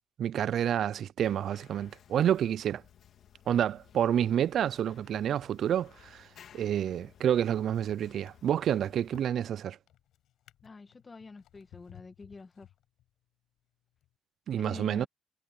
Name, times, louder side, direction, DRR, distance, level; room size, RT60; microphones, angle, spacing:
voice 1, 0.2-2.8 3.5-6.3 6.5-9.8 14.5-15.1, right 10 dB, 65° right, 0.3 m, -29 dB
sound 1, 1.2-9.2, left 9 dB, 65° left, 3.1 m, -58 dB
Drawer open or close, 8.2-13.2 13.9-14.1, left 13 dB, 85° left, 5.8 m, -59 dB
voice 2, 10.6-12.7 14.6-15.1, left 4 dB, 30° left, 2.0 m, -46 dB
cardioid pair, 90°, 0 cm